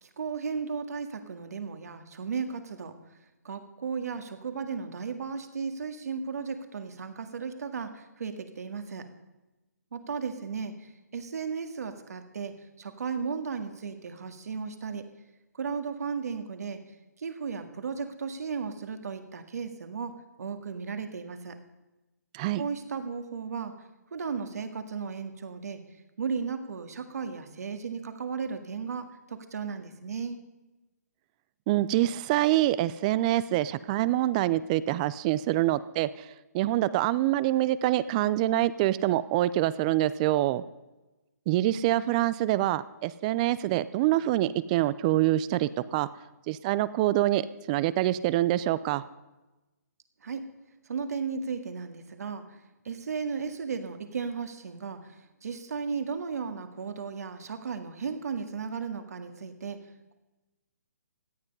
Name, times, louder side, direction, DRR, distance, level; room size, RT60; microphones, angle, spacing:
voice 1, 0.0-3.0 3.4-9.1 9.9-15.1 15.6-16.8 17.2-21.6 22.6-23.8 24.1-25.8 26.2-30.4 50.2-50.5 50.9-52.6 52.8-55.0 55.4-59.8, right 5 dB, 65° right, 8 dB, 1.9 m, -35 dB
voice 2, 31.7-36.3 36.5-40.6 41.5-46.1 46.5-49.0, right 15 dB, 25° right, 17 dB, 0.5 m, -25 dB
17.0 x 12.0 x 5.4 m, 1.1 s
hypercardioid pair, 150°, 9 cm